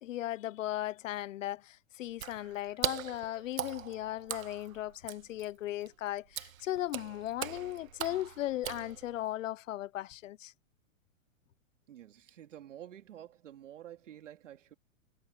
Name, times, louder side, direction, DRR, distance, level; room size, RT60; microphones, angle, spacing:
voice 1, 0.0-10.5, left 14 dB, 70° left, 0.5 m, -37 dB
Water / Splash splatter, 2.1-9.3, right 11 dB, 80° right, 1.4 m, -41 dB
voice 2, 11.9-14.7, right 11 dB, 60° right, 3.1 m, -50 dB
hypercardioid pair, 180°, 40 cm